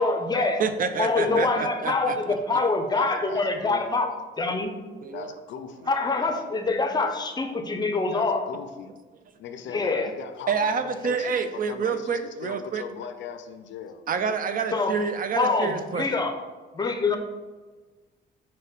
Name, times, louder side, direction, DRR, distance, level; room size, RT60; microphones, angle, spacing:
voice 1, 0.0-0.6 1.0-4.8 5.9-8.4 9.7-10.1 14.7-15.0 15.4-16.4 16.7-17.2, left 3 dB, 20° left, 6 dB, 0.6 m, -25 dB
voice 2, 0.6-2.2 5.0-5.3 10.5-12.8 14.1-16.1 17.1-17.2, right 6 dB, 45° right, 9 dB, 0.4 m, -28 dB
voice 3, 1.2-1.6 2.9-3.8 5.1-5.9 8.1-8.9 9.4-14.0, left 8 dB, 70° left, 9 dB, 0.4 m, -39 dB
5.0 x 2.2 x 4.0 m, 1.3 s
cardioid pair, 90°, 20 cm